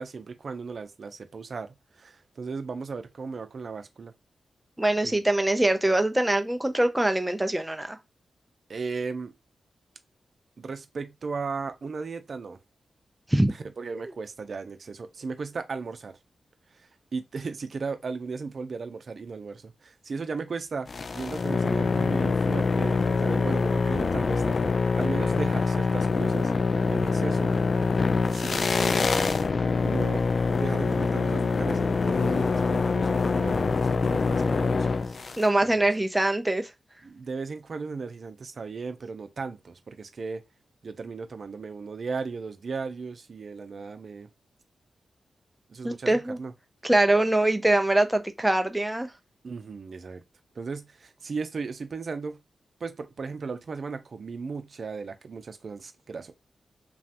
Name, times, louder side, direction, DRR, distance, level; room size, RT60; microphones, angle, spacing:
voice 1, 0.0-4.1 5.0-5.2 8.7-9.3 10.6-12.6 13.5-16.2 16.7-26.5 26.9-27.6 28.3-29.0 29.5-30.2 30.5-35.2 35.6-35.9 37.0-40.4 40.8-44.3 45.7-46.5 49.4-50.2 50.5-52.4 52.8-56.3, right 4 dB, 60° right, 0.6 m, -36 dB
voice 2, 4.8-8.0 13.3-13.5 13.9-14.0 35.4-36.7 45.8-46.4 46.8-49.1, right 1 dB, 10° right, 0.5 m, -23 dB
sound 1, 20.9-35.5, left 4 dB, 55° left, 0.3 m, -25 dB
3.1 x 2.3 x 2.9 m
cardioid pair, 70°, 0 cm